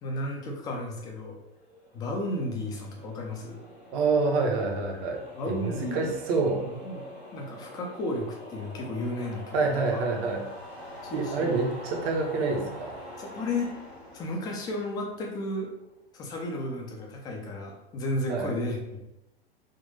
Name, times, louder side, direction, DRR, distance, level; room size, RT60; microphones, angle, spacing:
voice 1, 0.0-1.4 1.9-3.6 5.4-6.1 6.5-7.0 7.3-9.6 9.9-10.0 11.0-11.6 13.2-13.8 14.1-15.7 16.1-19.0, left 1 dB, 15° left, 1 dB, 0.4 m, -33 dB
sound 1, 1.4-15.8, equal, 80° left, 1.3 m, -45 dB
voice 2, 3.9-6.7 9.5-10.5 11.1-13.0 18.3-18.5, right 3 dB, 35° right, 1 dB, 0.6 m, -27 dB
3.6 x 2.3 x 2.6 m, 0.91 s
figure-of-eight pair, 95°, 31 cm